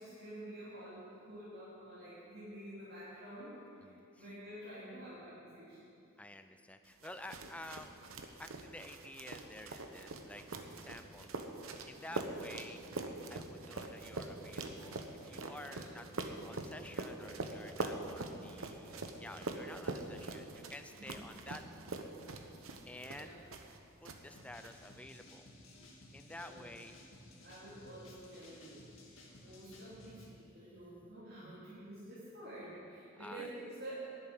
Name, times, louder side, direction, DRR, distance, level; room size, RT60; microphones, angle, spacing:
voice 1, 0.0-5.9 12.0-12.3 15.7-16.0 20.9-21.3 23.1-23.4 26.3-26.7 27.4-34.1, right 1 dB, 50° right, -12 dB, 3.4 m, -49 dB
voice 2, 3.8-4.2 6.2-7.9 8.4-10.4 10.8-11.3 11.8-12.8 13.3-16.1 16.4-22.1 22.9-23.3 24.0-25.5 26.1-27.0 29.3-29.6 33.2-33.5, left 1 dB, 5° left, 8 dB, 0.4 m, -51 dB
sound 1, 7.0-23.8 24.0-24.7, right 2 dB, 90° right, 1.0 m, -43 dB
sound 2, 24.3-30.3, left 1 dB, 75° left, 2.2 m, -57 dB
11.0 x 8.1 x 9.8 m, 2.6 s
head